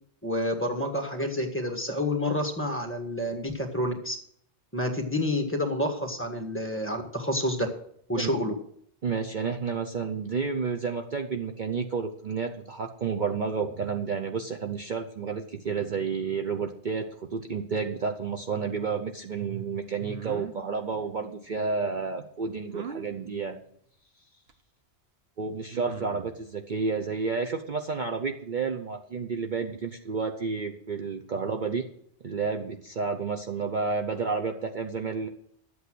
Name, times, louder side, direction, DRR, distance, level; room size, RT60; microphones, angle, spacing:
voice 1, 0.2-4.2 4.7-7.7 8.1-8.5, left 1 dB, 10° left, 3 dB, 1.7 m, -29 dB
voice 2, 9.0-23.6 25.4-31.9 32.2-35.3, right 5 dB, 45° right, 4 dB, 0.9 m, -31 dB
sound 1, 20.1-20.5 22.7-23.1 24.5-24.6 25.7-26.3, right 7 dB, 65° right, 1.2 m, -39 dB
11.5 x 8.3 x 6.2 m, 0.66 s
omnidirectional pair, 1.2 m